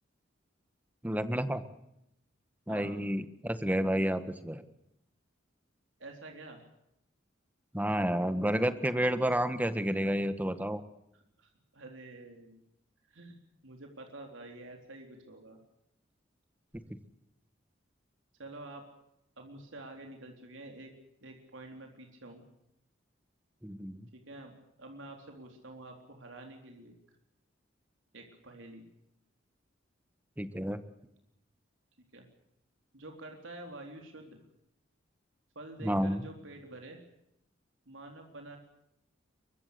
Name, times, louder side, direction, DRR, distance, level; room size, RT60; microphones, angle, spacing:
voice 1, 1.0-1.6 2.7-4.6 7.7-10.8 23.6-24.1 30.4-30.8 35.8-36.2, equal, 10° right, 11 dB, 1.5 m, -30 dB
voice 2, 2.7-3.0 6.0-6.6 11.1-12.6 13.1-13.4 13.6-15.6 18.4-18.8 19.4-20.9 21.2-22.4 24.1-24.5 24.8-26.9 28.1-28.9 32.1-32.2 32.9-34.4 35.6-37.0 37.9-38.6, right 2 dB, 85° right, 2 dB, 3.8 m, -48 dB
23.5 x 23.5 x 6.8 m, 0.82 s
head